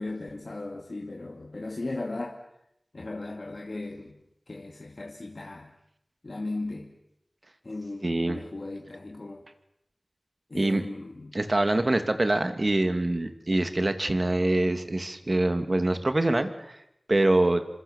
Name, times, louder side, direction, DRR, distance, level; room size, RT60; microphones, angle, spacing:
voice 1, 0.0-2.4 2.9-4.2 4.5-5.7 6.2-6.9 7.6-9.4 10.5-11.4, left 2 dB, 65° left, 2 dB, 2.4 m, -37 dB
voice 2, 8.0-8.4 10.5-10.8 11.3-16.8 17.1-17.6, right 2 dB, 50° right, 8 dB, 2.6 m, -24 dB
28.5 x 26.0 x 7.3 m, 0.81 s
wide cardioid pair, 45°, 0 cm